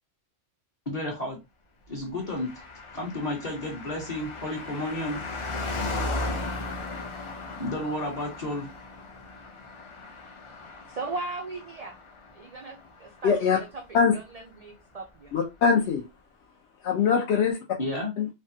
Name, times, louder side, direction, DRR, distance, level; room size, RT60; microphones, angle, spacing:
voice 1, 0.9-1.4 1.9-2.6 2.9-5.2 7.6-8.7 17.8-18.1, left 1 dB, 35° left, 0.8 m, -32 dB
Car passing by, 2.2-14.1 14.3-14.4, left 2 dB, 50° left, 0.3 m, -37 dB
voice 2, 10.9-11.9 12.3-13.7 14.1-14.2 14.6-15.3, right 3 dB, 75° right, 0.3 m, -37 dB
voice 3, 13.2-13.6 13.9-14.1 15.3-16.0 16.8-17.6 18.2-18.3, left 6 dB, 70° left, 0.8 m, -22 dB
3.4 x 2.1 x 2.7 m
omnidirectional pair, 1.3 m